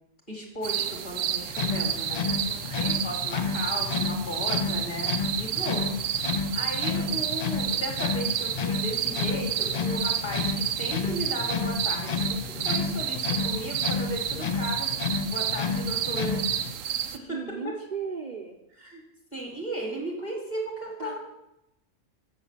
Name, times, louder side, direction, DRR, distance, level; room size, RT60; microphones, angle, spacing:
voice 1, 0.3-14.9 15.3-16.5 16.8-17.4 17.6-17.7 18.8-19.0 19.3-21.2, equal, 35° left, 0 dB, 2.3 m, -36 dB
sound 1, 0.6-17.2, right 10 dB, 85° right, 1.0 m, -31 dB
sound 2, 1.5-16.7, left 5 dB, 55° left, 0.5 m, -31 dB
voice 2, 2.2-2.8 17.1-18.6 21.0-21.2, right 5 dB, 40° right, 1 dB, 0.8 m, -37 dB
7.6 x 6.6 x 6.7 m, 0.87 s
omnidirectional pair, 1.3 m